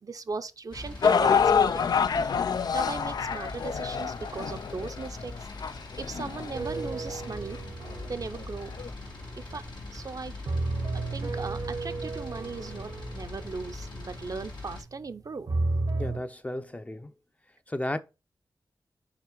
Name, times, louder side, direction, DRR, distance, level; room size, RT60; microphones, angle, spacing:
voice 1, 0.0-1.8 2.7-5.3 6.0-7.6 8.1-8.7 9.4-9.6 9.9-10.3 10.9-15.5 15.7-15.8, right 4 dB, 55° right, 0.6 m, -38 dB
sound 1, 0.7-14.8, left 2 dB, 90° left, 1.8 m, -42 dB
sound 2, 1.0-7.2 7.9-8.0 8.8-8.9, left 6 dB, 65° left, 0.4 m, -26 dB
sound 3, 6.5-9.9 10.4-15.1 15.5-16.2, right 3 dB, 70° right, 1.0 m, -33 dB
voice 2, 16.0-17.1 17.7-18.0, left 1 dB, 20° left, 0.6 m, -33 dB
5.8 x 4.3 x 4.5 m
cardioid pair, 55°, 7 cm